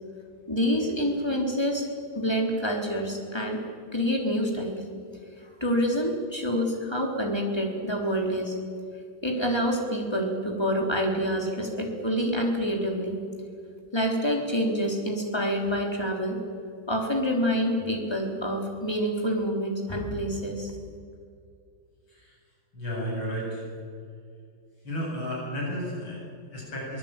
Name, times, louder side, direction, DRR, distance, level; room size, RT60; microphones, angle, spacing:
voice 1, 0.5-1.8 2.2-3.6 3.9-4.8 5.6-8.5 9.2-13.2 13.9-16.4 16.9-20.7, equal, 10° left, 1 dB, 3.7 m, -27 dB
voice 2, 22.7-23.7 24.8-27.0, equal, 85° left, -4 dB, 8.8 m, -33 dB
24.0 x 19.5 x 9.0 m, 2.3 s
omnidirectional pair, 2.2 m